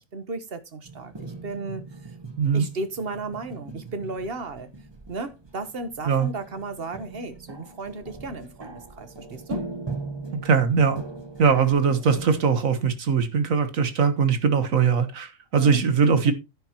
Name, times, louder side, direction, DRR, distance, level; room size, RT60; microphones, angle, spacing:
voice 1, 0.0-2.1 2.5-4.7 5.1-9.6 15.6-15.8 16.2-16.3, right 3 dB, 50° right, 1.4 m, -35 dB
sound 1, 0.8-12.4, right 2 dB, 20° right, 1.1 m, -39 dB
voice 2, 10.3-11.0 11.4-16.3, right 6 dB, 90° right, 1.8 m, -21 dB
10.5 x 9.3 x 3.0 m
omnidirectional pair, 1.4 m